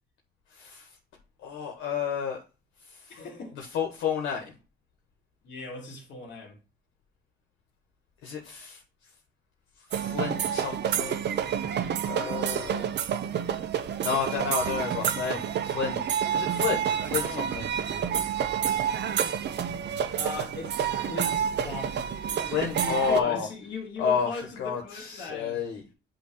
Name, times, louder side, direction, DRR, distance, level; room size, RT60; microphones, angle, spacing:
voice 1, 0.5-0.9 1.4-2.4 2.8-3.2 3.5-4.5 8.2-8.8 9.9-11.3 12.1-12.9 14.0-16.0 16.3-17.7 22.4-23.5 24.0-25.8, left 6 dB, 85° left, 1.2 m, -31 dB
voice 2, 3.1-3.5 5.4-6.6 17.2-17.4 20.1-22.1 22.8-25.6, left 3 dB, 65° left, 2.9 m, -39 dB
sound 1, 9.9-23.2, right 8 dB, 60° right, 0.7 m, -29 dB
7.9 x 3.0 x 5.0 m
cardioid pair, 90°, 20 cm